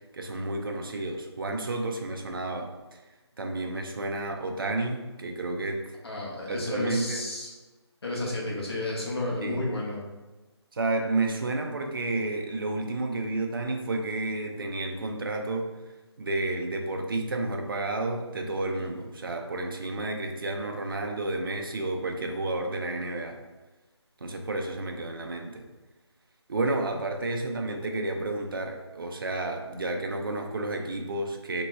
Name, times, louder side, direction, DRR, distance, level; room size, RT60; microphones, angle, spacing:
voice 1, 0.1-3.0 3.4-5.9 6.5-7.2 9.4-9.6 10.7-15.7 16.2-23.4 24.2-25.7 26.5-31.6, right 2 dB, 50° right, 3 dB, 0.5 m, -31 dB
voice 2, 6.0-7.5 8.0-10.0, left 2 dB, 60° left, -4 dB, 1.2 m, -31 dB
3.5 x 3.0 x 2.2 m, 1.1 s
figure-of-eight pair, 165°, 15 cm